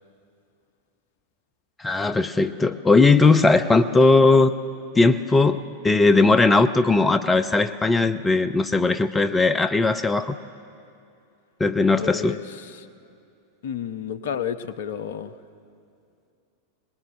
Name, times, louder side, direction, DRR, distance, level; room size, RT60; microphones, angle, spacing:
voice 1, 1.8-4.5 5.0-10.3 11.6-12.4, left 3 dB, 15° left, 11 dB, 0.6 m, -18 dB
voice 2, 12.0-12.9 13.6-15.3, left 8 dB, 55° left, 14 dB, 0.8 m, -31 dB
22.5 x 19.5 x 8.7 m, 2.5 s
figure-of-eight pair, 90°, 0 cm